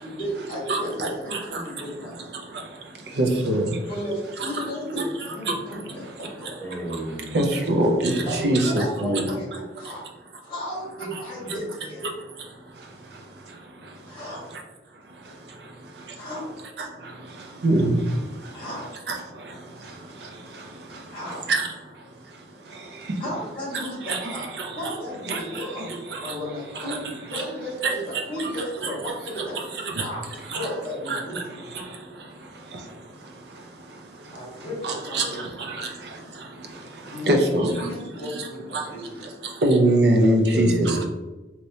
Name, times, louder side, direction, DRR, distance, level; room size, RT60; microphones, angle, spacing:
voice 1, 0.0-2.2 3.8-6.6 8.3-10.1 10.4-12.0 14.1-14.5 16.2-16.5 18.5-19.0 21.1-21.5 23.2-24.5 24.7-25.9 26.2-29.6 30.0-31.4 34.3-35.4 37.1-37.4 37.8-39.3, equal, 30° left, -5 dB, 1.4 m, -34 dB
voice 2, 0.7-1.4 3.2-3.7 4.4-4.5 5.5-5.6 7.3-9.3 17.6-18.0 19.1-19.2 21.5-21.6 24.1-24.3 24.6-24.7 25.3-25.4 26.8-27.0 27.3-27.4 27.8-27.9 28.8-28.9 30.0-30.1 30.5-30.7 31.1-31.2 34.8-35.3 35.8-35.9 37.3-37.7 38.7-38.8 39.6-41.1, right 1 dB, 70° right, 2 dB, 0.6 m, -22 dB
voice 3, 6.6-7.7 40.5-41.1, right 1 dB, 10° left, -6 dB, 0.8 m, -31 dB
3.1 x 2.9 x 2.7 m, 1.1 s
head